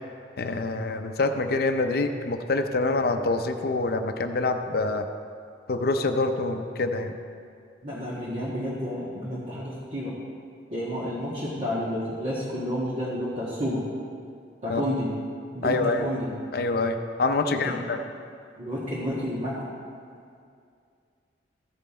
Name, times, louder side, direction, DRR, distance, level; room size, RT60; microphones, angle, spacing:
voice 1, 0.4-5.1 5.7-7.1 14.7-14.8 15.6-16.0 16.5-18.0, left 3 dB, 55° left, 6 dB, 0.6 m, -26 dB
voice 2, 7.8-10.1 10.7-13.8 14.6-15.1 15.5-16.3 17.4-17.7 18.6-19.7, equal, 40° right, -9 dB, 1.6 m, -30 dB
14.5 x 5.6 x 4.2 m, 2.3 s
head